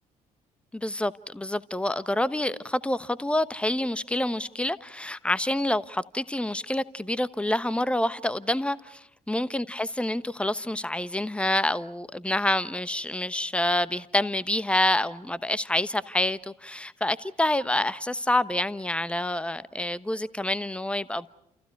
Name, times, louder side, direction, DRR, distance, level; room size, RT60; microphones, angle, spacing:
voice 1, 0.7-21.3, left 1 dB, 5° left, 1.1 m, -27 dB
30.0 x 29.0 x 4.7 m
figure-of-eight pair, 45°, 19 cm